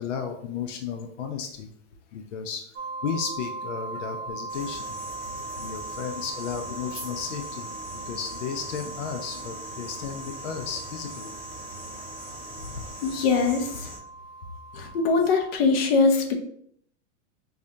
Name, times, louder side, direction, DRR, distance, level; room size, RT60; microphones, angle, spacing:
voice 1, 0.0-1.7 2.1-2.7 3.0-4.8 5.6-7.7 8.1-11.3 12.6-12.9, left 7 dB, 85° left, 5 dB, 0.6 m, -34 dB
sound 1, 2.7-15.6, right 3 dB, 15° right, 0.5 m, -39 dB
sound 2, 4.5-14.0, equal, 5° left, 1.1 m, -42 dB
voice 2, 13.0-13.7 14.7-16.3, left 4 dB, 55° left, 3 dB, 0.8 m, -22 dB
4.9 x 2.4 x 2.7 m, 0.67 s
supercardioid pair, 155°, 37 cm